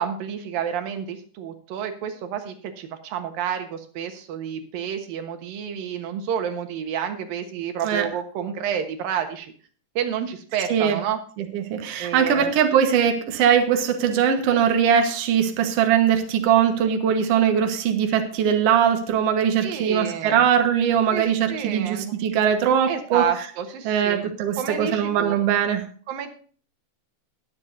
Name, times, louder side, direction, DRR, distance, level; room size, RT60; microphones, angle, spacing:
voice 1, 0.0-9.5 10.0-11.2 12.0-12.5 19.6-20.4 21.1-22.2 22.9-24.3 24.6-25.4 26.1-26.3, right 8 dB, 90° right, 6 dB, 3.1 m, -29 dB
voice 2, 11.4-23.2 23.8-25.8, right 8 dB, 55° right, 5 dB, 2.1 m, -21 dB
21.5 x 7.4 x 2.7 m, 0.42 s
omnidirectional pair, 3.9 m